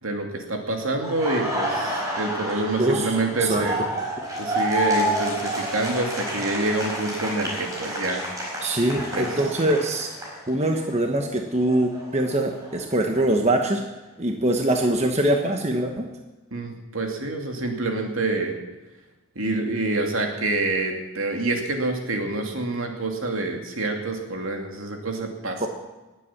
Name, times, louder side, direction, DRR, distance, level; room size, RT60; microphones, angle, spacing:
voice 1, 0.0-3.8 4.4-8.2 9.1-9.4 16.5-18.6 19.4-25.7, right 2 dB, 70° right, 3 dB, 2.6 m, -27 dB
Laughter, 1.0-10.9 11.2-13.2, equal, 15° right, 4.6 m, -30 dB
voice 2, 2.8-3.7 8.6-10.1 10.5-13.8 14.2-16.1 25.6-25.7, right 1 dB, 30° right, 3 dB, 1.2 m, -23 dB
19.5 x 8.4 x 7.4 m, 1.1 s
head